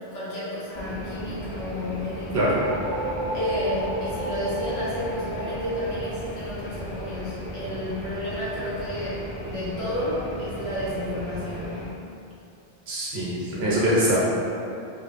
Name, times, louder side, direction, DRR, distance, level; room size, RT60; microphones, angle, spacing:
voice 1, 0.1-2.5 3.3-11.9, left 1 dB, 85° left, -10 dB, 1.2 m, -31 dB
sound 1, 0.7-11.9, equal, 60° left, 0.7 m, -36 dB
sound 2, 2.4-6.9, right 1 dB, 15° left, 0.6 m, -34 dB
voice 2, 12.9-14.2, right 1 dB, 85° right, -7 dB, 1.0 m, -23 dB
3.1 x 2.0 x 2.4 m, 2.6 s
omnidirectional pair, 1.0 m